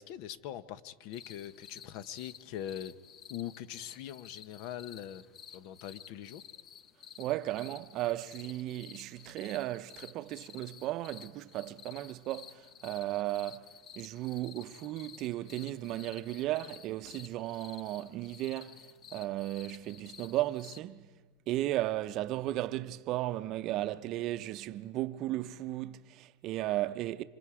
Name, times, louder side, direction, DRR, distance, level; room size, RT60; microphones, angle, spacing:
voice 1, 0.0-2.9 3.3-5.2 5.5-6.4, left 11 dB, 55° left, 0.9 m, -42 dB
sound 1, 1.1-20.8, left 8 dB, 35° left, 0.7 m, -53 dB
voice 2, 7.2-13.7 14.0-18.8 19.1-21.1 21.5-27.2, right 15 dB, 45° right, 0.7 m, -35 dB
26.5 x 26.0 x 4.9 m
supercardioid pair, 140°, 0 cm